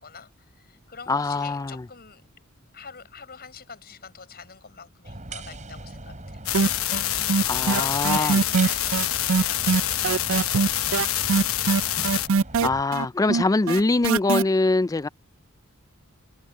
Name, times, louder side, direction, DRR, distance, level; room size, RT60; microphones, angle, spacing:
voice 1, 0.0-2.2 2.7-10.0 10.3-12.5, left 6 dB, 45° left, 5.8 m, -44 dB
voice 2, 1.1-1.8 7.5-8.4 12.6-15.1, left 3 dB, 15° left, 0.3 m, -23 dB
sound 1, 5.0-12.8, right 2 dB, 35° right, 6.0 m, -40 dB
sound 2, 6.5-12.3, left 13 dB, 70° left, 1.1 m, -26 dB
sound 3, 6.5-7.0 7.3-14.4, right 5 dB, 65° right, 0.5 m, -22 dB
head